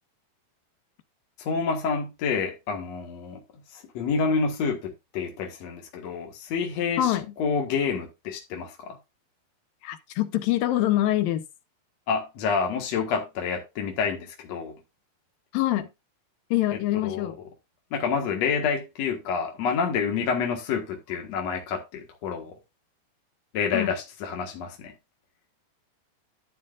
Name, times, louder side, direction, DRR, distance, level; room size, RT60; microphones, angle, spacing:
voice 1, 1.4-3.4 3.7-9.0 12.1-14.7 16.7-17.3 17.9-22.5 23.5-24.9, left 5 dB, 55° left, 2.2 m, -28 dB
voice 2, 9.8-11.4 15.5-15.9 16.5-17.4 23.7-23.9, left 14 dB, 75° left, 2.4 m, -24 dB
12.0 x 8.3 x 2.4 m
omnidirectional pair, 4.6 m